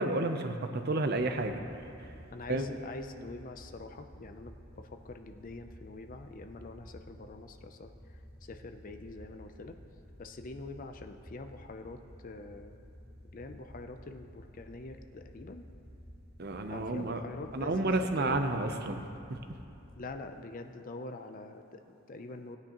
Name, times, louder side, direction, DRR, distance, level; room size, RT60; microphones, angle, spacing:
voice 1, 0.0-1.6 2.5-2.7 16.4-17.2 17.5-19.0 19.3-19.4, right 2 dB, 50° right, 7 dB, 0.6 m, -30 dB
sound 1, 1.1-20.1, equal, 5° left, 0.9 m, -53 dB
voice 2, 2.3-9.8 10.2-12.8 13.2-15.7 16.7-18.4 20.0-22.6, left 2 dB, 40° left, 7 dB, 0.5 m, -45 dB
17.0 x 9.5 x 3.0 m, 2.9 s
head